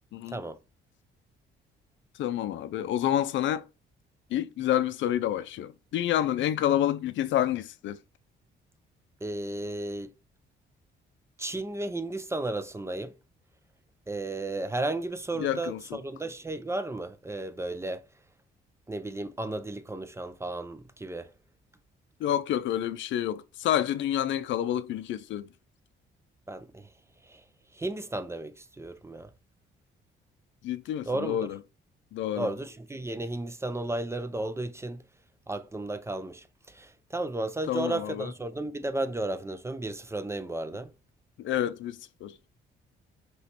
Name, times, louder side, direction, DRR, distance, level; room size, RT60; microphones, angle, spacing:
voice 1, 2.2-3.6 4.3-8.0 15.4-16.0 22.2-25.5 30.6-31.6 32.1-32.5 37.7-38.3 41.4-42.3, left 11 dB, 75° left, 0.4 m, -28 dB
voice 2, 9.2-10.1 11.4-13.1 14.1-18.1 18.9-21.3 26.5-26.9 27.2-27.4 27.7-29.3 31.1-31.5 32.4-35.0 35.5-40.9, right 2 dB, 15° right, 0.4 m, -34 dB
4.8 x 3.0 x 2.9 m
cardioid pair, 90°, 20 cm